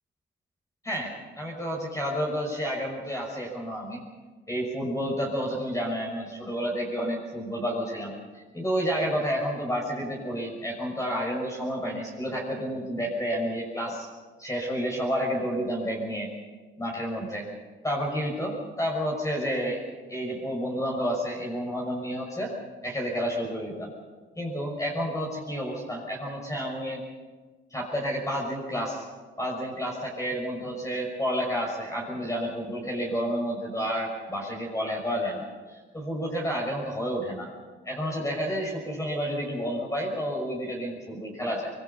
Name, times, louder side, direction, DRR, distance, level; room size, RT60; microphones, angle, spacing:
voice 1, 0.8-4.0 4.5-8.1 8.5-14.1 14.4-16.3 16.8-17.5 17.8-19.8 20.1-22.5 22.8-23.9 24.4-27.0 27.7-29.0 29.4-37.5 37.8-41.7, equal, 15° left, -1 dB, 5.9 m, -30 dB
25.5 x 21.5 x 5.6 m, 1.3 s
cardioid pair, 90°, 20 cm